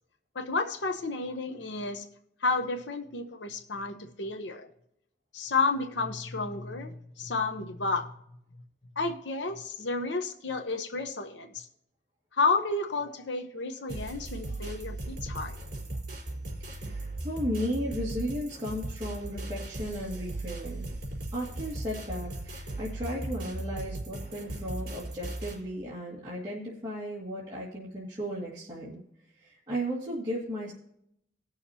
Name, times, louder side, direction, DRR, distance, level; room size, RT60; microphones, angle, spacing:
voice 1, 0.3-2.0 2.4-4.7 5.3-8.1 9.0-11.7 12.3-15.6, left 3 dB, 80° left, 6 dB, 0.9 m, -31 dB
sound 1, 13.9-25.6, right 2 dB, 60° right, 4.1 m, -37 dB
voice 2, 16.7-20.9 21.3-29.0 29.4-30.7, equal, 25° right, -8 dB, 2.0 m, -35 dB
19.0 x 6.5 x 2.8 m, 0.75 s
head